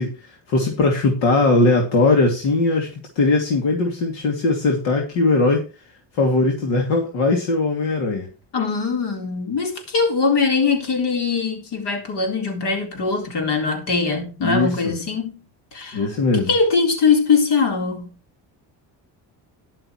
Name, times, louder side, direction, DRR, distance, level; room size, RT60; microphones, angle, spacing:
voice 1, 0.0-2.9 3.2-5.6 6.1-8.3 14.4-14.9 15.9-16.5, left 3 dB, 85° left, 2.7 m, -19 dB
voice 2, 8.5-15.4 15.7-16.0 16.5-18.1, left 4 dB, 65° left, 3.9 m, -21 dB
12.0 x 11.5 x 3.1 m
cardioid pair, 125°, 44 cm